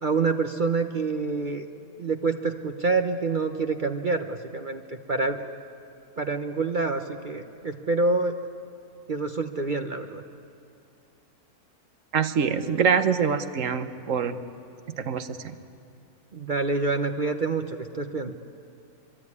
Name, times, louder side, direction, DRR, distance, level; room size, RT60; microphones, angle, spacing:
voice 1, 0.0-1.6 2.0-5.5 6.2-8.3 9.1-10.2 16.3-18.3, right 3 dB, 40° right, 6 dB, 0.9 m, -27 dB
voice 2, 12.1-14.4 15.0-15.4, right 6 dB, 60° right, 10 dB, 1.4 m, -24 dB
24.5 x 24.0 x 9.7 m, 2.6 s
omnidirectional pair, 1.6 m